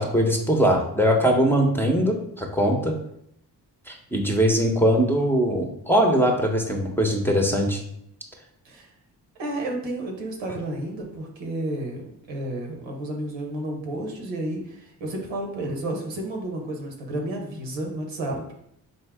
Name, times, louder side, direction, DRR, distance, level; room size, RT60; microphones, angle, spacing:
voice 1, 0.0-2.9 3.9-7.8, equal, 5° left, 1 dB, 0.7 m, -21 dB
voice 2, 9.4-18.5, right 1 dB, 90° right, 1 dB, 0.9 m, -31 dB
3.8 x 2.7 x 3.4 m, 0.73 s
supercardioid pair, 45°, 43 cm